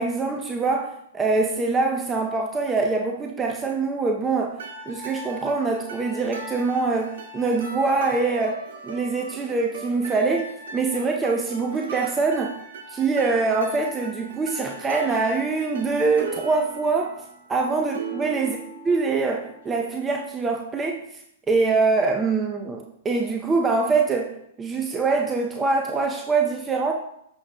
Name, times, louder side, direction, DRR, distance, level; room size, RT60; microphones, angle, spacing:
voice 1, 0.0-4.6 4.9-12.6 12.9-17.1 17.5-18.6 18.9-21.2 21.5-26.9, right 4 dB, 15° right, 2 dB, 0.6 m, -24 dB
sound 1, 4.6-19.7, right 2 dB, 75° right, 1.8 m, -39 dB
8.6 x 6.0 x 2.2 m, 0.76 s
hypercardioid pair, 125°, 0 cm